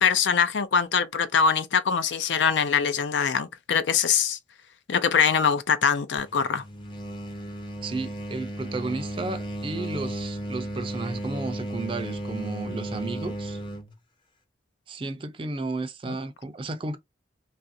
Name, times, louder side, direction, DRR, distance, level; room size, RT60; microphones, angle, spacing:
voice 1, 0.0-4.4 4.9-6.6 16.1-16.2, left 6 dB, 85° left, 0.5 m, -23 dB
sound 1, 6.2-13.9, right 1 dB, 25° left, 0.6 m, -34 dB
voice 2, 7.8-13.6 14.9-17.0, right 3 dB, 30° right, 0.4 m, -33 dB
3.2 x 2.5 x 2.6 m
head